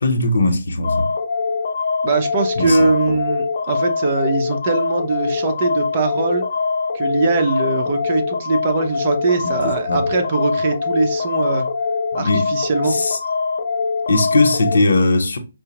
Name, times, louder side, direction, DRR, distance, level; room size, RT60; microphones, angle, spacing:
voice 1, 0.0-1.1 2.6-2.9 9.4-10.0 12.1-12.5 12.9-13.2 14.1-15.4, left 2 dB, 80° left, 0.8 m, -19 dB
sound 1, 0.8-14.8, left 4 dB, 45° left, 0.5 m, -23 dB
voice 2, 2.0-6.5 6.9-11.7 12.1-13.0, right 3 dB, 35° right, 0.6 m, -21 dB
4.6 x 2.1 x 2.9 m
hypercardioid pair, 170°, 0 cm